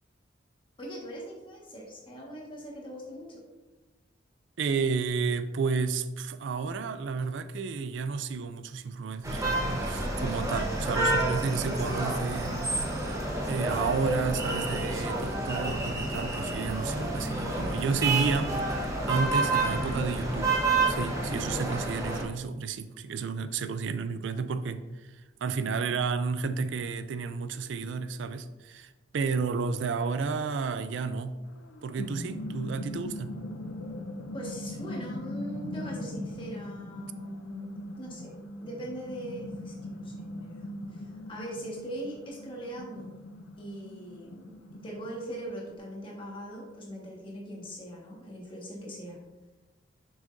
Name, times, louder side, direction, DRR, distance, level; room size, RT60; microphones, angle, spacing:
voice 1, 0.8-3.4 34.3-38.3 38.6-40.7 40.9-43.1 43.6-49.2, right 1 dB, 25° left, -3 dB, 1.6 m, -41 dB
voice 2, 4.6-12.7 13.4-20.5 20.9-31.4 31.8-33.3, right 5 dB, 70° right, 11 dB, 0.4 m, -31 dB
sound 1, 9.2-22.2, right 2 dB, 15° right, 1.0 m, -29 dB
sound 2, 31.5-45.8, left 1 dB, 80° left, 0.6 m, -40 dB
7.1 x 6.3 x 2.6 m, 1.1 s
head